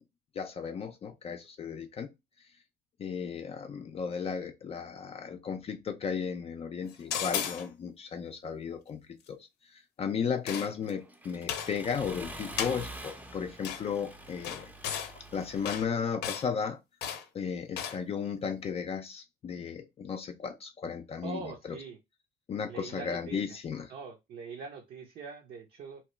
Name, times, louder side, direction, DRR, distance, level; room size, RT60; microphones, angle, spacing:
voice 1, 0.4-2.1 3.0-9.0 9.3-16.8 17.3-21.4 21.6-21.8 22.5-23.9, left 6 dB, 35° left, 0.4 m, -35 dB
sound 1, 7.1-7.7 10.5-10.9 11.5-11.7 12.6-12.8 13.6-13.8 14.4-15.1 15.6-15.9 16.2-16.5 17.0-17.2 17.8-18.0, left 8 dB, 80° left, 0.6 m, -34 dB
Accelerating revving vroom, 10.6-15.8, right 1 dB, 10° right, 0.6 m, -46 dB
voice 2, 21.2-22.0 22.7-23.4 23.9-26.0, right 5 dB, 60° right, 0.7 m, -43 dB
2.9 x 2.2 x 3.1 m
cardioid pair, 110°, 17 cm